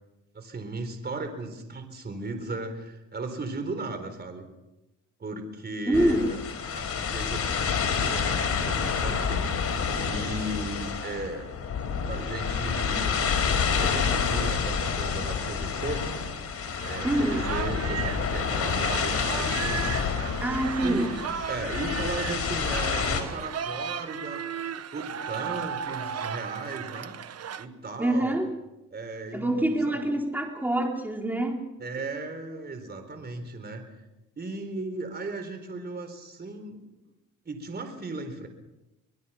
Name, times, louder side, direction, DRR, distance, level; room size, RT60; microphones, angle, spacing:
voice 1, 0.3-4.5 5.2-6.4 6.7-9.5 10.0-11.6 12.1-13.1 13.7-16.1 16.8-19.8 20.8-21.0 21.5-24.5 24.9-27.2 27.6-28.4 28.9-30.0 31.8-33.9 34.4-36.8 37.4-38.5, right 2 dB, 35° right, 7 dB, 4.2 m, -36 dB
sound 1, 5.9-23.2, left 6 dB, 50° left, 4.8 m, -28 dB
voice 2, 5.9-6.3 17.0-17.5 20.4-21.1 28.0-28.5 29.3-31.6, right 1 dB, 5° right, 1 dB, 4.1 m, -25 dB
sound 2, 16.8-27.7, right 8 dB, 55° right, 1.2 m, -35 dB
26.0 x 21.5 x 5.8 m, 0.95 s
cardioid pair, 90°, 30 cm